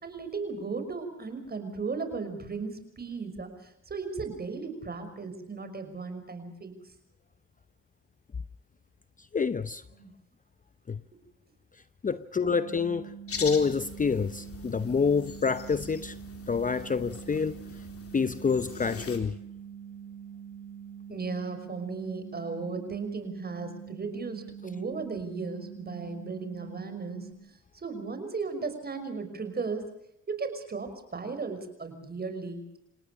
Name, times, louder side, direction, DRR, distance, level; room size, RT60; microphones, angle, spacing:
voice 1, 0.0-3.5 3.9-6.7 9.9-10.1 21.1-27.3 27.7-29.8 30.3-32.8, right 4 dB, 30° right, 5.7 m, -36 dB
voice 2, 9.3-9.8 10.9-11.0 12.0-16.2 16.5-17.6 18.1-19.3, left 5 dB, 25° left, 0.8 m, -27 dB
sound 1, 12.5-27.3, right 8 dB, 65° right, 2.8 m, -45 dB
sound 2, 13.3-19.2, left 6 dB, 50° left, 3.8 m, -43 dB
28.0 x 18.5 x 6.6 m
cardioid pair, 90°, 30 cm